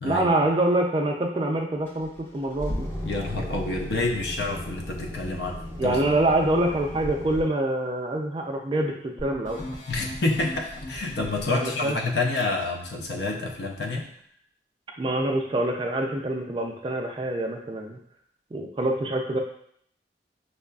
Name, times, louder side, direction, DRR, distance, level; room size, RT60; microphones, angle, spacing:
voice 1, 0.0-2.9 5.8-9.6 11.5-12.0 15.0-18.0 18.5-19.4, right 1 dB, 30° right, 2 dB, 0.3 m, -25 dB
sound 1, 1.9-7.4, equal, 10° left, 0.6 m, -35 dB
voice 2, 3.0-6.0 9.9-14.1, left 2 dB, 75° left, 1 dB, 0.6 m, -28 dB
sound 2, 9.2-11.9, left 1 dB, 45° left, 0.8 m, -38 dB
5.4 x 2.4 x 2.2 m, 0.66 s
head